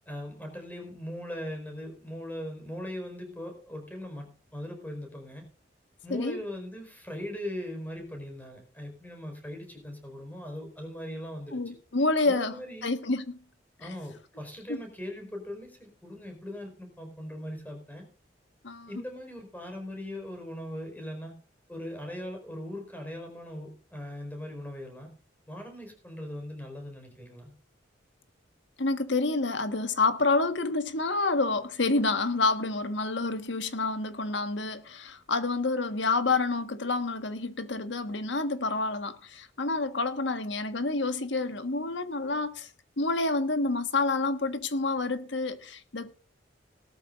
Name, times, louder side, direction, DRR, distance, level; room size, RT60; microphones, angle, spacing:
voice 1, 0.1-5.4 6.0-11.7 12.3-12.9 13.8-18.1 18.9-21.3 21.7-25.1 25.5-27.5, left 1 dB, 10° left, 4.6 m, -40 dB
voice 2, 6.1-6.4 11.5-13.4 14.7-14.8 18.6-18.9 28.8-42.7 43.0-46.1, left 3 dB, 75° left, 1.5 m, -28 dB
18.5 x 13.0 x 2.5 m
head